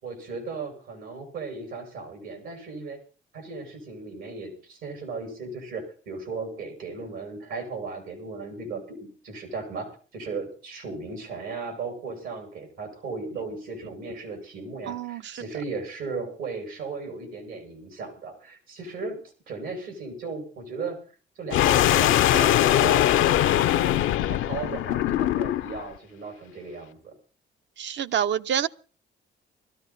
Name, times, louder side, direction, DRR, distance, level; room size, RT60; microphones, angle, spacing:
voice 1, 0.0-3.0 3.3-19.2 19.5-21.0 21.4-23.1 23.6-27.1, right 4 dB, 85° right, 6.7 m, -36 dB
voice 2, 14.9-15.4 27.8-28.7, right 9 dB, 65° right, 0.7 m, -27 dB
sound 1, 21.5-25.8, left 13 dB, 85° left, 0.6 m, -21 dB
21.0 x 13.5 x 4.2 m
cardioid pair, 90°, 20 cm